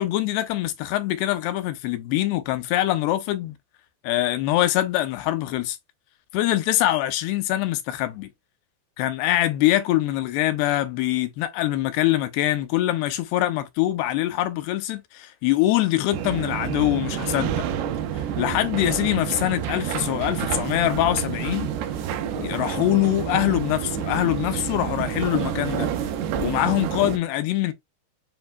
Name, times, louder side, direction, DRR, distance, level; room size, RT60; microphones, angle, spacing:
voice 1, 0.0-3.6 4.0-5.8 6.3-8.3 9.0-17.6 18.4-21.7 22.4-25.9 26.4-27.7, left 14 dB, 85° left, 2.7 m, -24 dB
sound 1, 16.1-27.2, right 9 dB, 85° right, 2.8 m, -28 dB
7.6 x 2.7 x 2.2 m
omnidirectional pair, 4.6 m